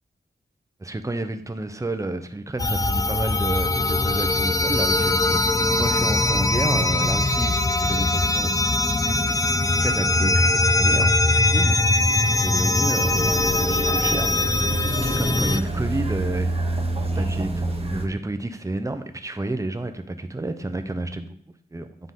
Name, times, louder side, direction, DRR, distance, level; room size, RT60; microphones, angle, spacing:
voice 1, 0.8-5.4 5.8-9.4 9.7-11.1 11.5-11.8 12.4-13.1 13.9-14.4 15.2-16.7 17.1-21.4 21.7-21.9, right 2 dB, 20° right, 8 dB, 0.7 m, -30 dB
sound 1, 2.6-15.6, left 2 dB, 20° left, 0.4 m, -21 dB
sound 2, 13.0-18.0, right 2 dB, 35° right, 1.0 m, -27 dB
9.7 x 3.9 x 3.7 m, 0.64 s
cardioid pair, 60°, 18 cm